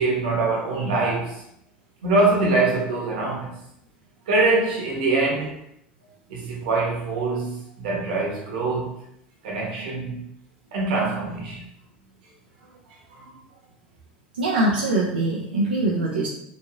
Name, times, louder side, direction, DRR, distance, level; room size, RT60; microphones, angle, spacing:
voice 1, 0.0-1.4 2.0-3.6 4.3-5.6 6.3-8.9 9.4-10.2 10.7-11.6 13.1-13.3, right 3 dB, 70° right, 1.0 m, -24 dB
voice 2, 14.3-16.3, right 2 dB, 90° right, 0.4 m, -23 dB
3.0 x 2.5 x 2.4 m
hypercardioid pair, 80°, 5 cm